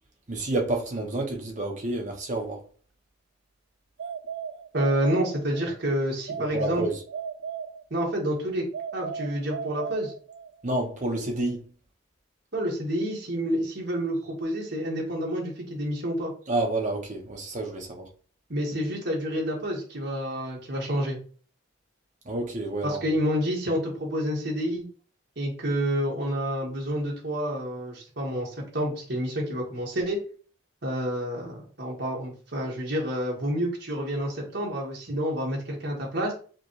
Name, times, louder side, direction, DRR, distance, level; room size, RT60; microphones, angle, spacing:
voice 1, 0.3-2.6 6.5-7.0 10.6-11.7 16.5-18.1 22.2-23.1, right 2 dB, 35° right, 0.8 m, -29 dB
sound 1, 4.0-5.8 6.3-8.2 8.7-10.6, right 7 dB, 80° right, 0.4 m, -36 dB
voice 2, 4.7-6.8 7.9-8.7 8.9-10.1 12.5-16.3 18.5-21.2 22.8-24.9 25.4-30.2 30.8-36.3, equal, 55° right, 1.2 m, -29 dB
5.1 x 2.2 x 3.1 m
head